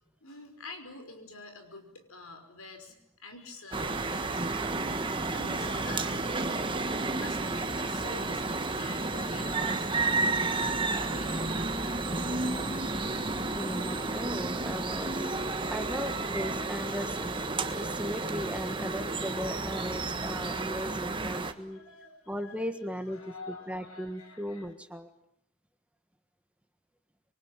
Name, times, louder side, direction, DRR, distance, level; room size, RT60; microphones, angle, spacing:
voice 1, 0.2-11.9 14.8-14.9 17.7-17.8 21.7-24.7, left 3 dB, 80° left, 6 dB, 5.5 m, -48 dB
sound 1, 3.7-21.5, right 3 dB, 25° right, 1.5 m, -31 dB
voice 2, 13.5-15.4 15.7-21.8 22.3-23.3 23.7-25.1, equal, 5° right, 8 dB, 1.5 m, -37 dB
26.0 x 24.0 x 9.1 m, 0.75 s
head